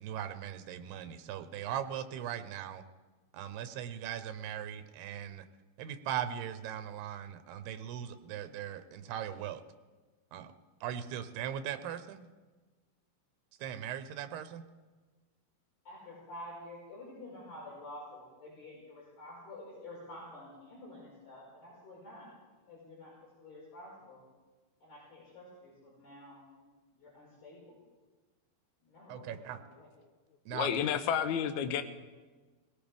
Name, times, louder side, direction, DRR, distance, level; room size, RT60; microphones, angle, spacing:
voice 1, 0.0-2.8 3.3-5.4 5.8-9.6 10.3-10.5 10.8-12.3 13.6-14.6 29.1-29.6 30.5-30.7, right 10 dB, 85° right, 10 dB, 2.8 m, -39 dB
voice 2, 15.8-22.3 22.7-23.1 23.4-24.3 24.8-26.6 27.0-27.8 28.8-29.9, left 1 dB, 55° left, -7 dB, 6.7 m, -49 dB
voice 3, 30.5-31.8, left 8 dB, 80° left, 8 dB, 1.6 m, -30 dB
21.5 x 17.0 x 3.5 m, 1.3 s
omnidirectional pair, 4.5 m